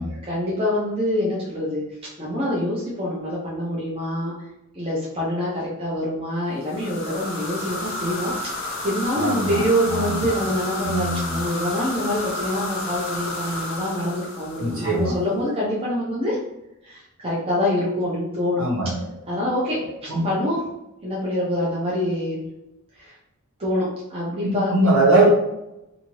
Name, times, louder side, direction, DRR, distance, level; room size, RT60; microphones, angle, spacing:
voice 1, 0.2-1.8 2.2-4.3 4.7-8.3 8.6-16.4 16.8-18.6 19.3-20.6 21.0-22.5 23.0-23.1 23.6-24.7 25.2-25.3, left 1 dB, 25° right, -6 dB, 0.6 m, -25 dB
sound 1, 6.6-15.2, left 1 dB, 60° left, 0.6 m, -31 dB
voice 2, 9.2-10.4 10.8-11.4 14.6-15.1 18.6-19.1 20.1-20.3 24.4-25.3, right 2 dB, 65° right, -5 dB, 1.1 m, -22 dB
2.6 x 2.6 x 3.0 m, 0.89 s
head